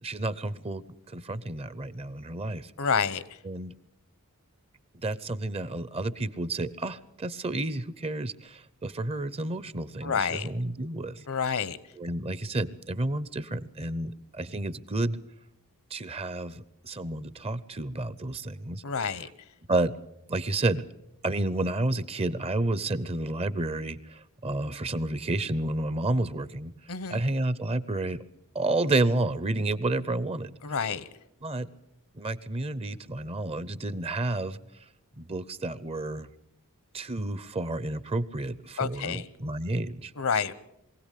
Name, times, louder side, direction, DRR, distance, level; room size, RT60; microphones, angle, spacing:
voice 1, 0.0-2.7 3.4-3.7 5.0-11.3 12.0-15.2 15.9-18.8 19.7-19.9 20.3-20.8 21.2-26.7 27.1-28.2 28.5-30.5 31.4-31.7 32.1-34.6 35.2-36.3 36.9-40.1, right 2 dB, 25° right, 17 dB, 0.7 m, -30 dB
voice 2, 2.8-3.4 10.0-10.5 11.3-11.8 18.8-19.3 26.9-27.2 30.6-31.1 38.8-39.3 40.2-40.5, left 6 dB, 70° left, 17 dB, 0.9 m, -29 dB
22.5 x 16.5 x 8.4 m, 0.84 s
head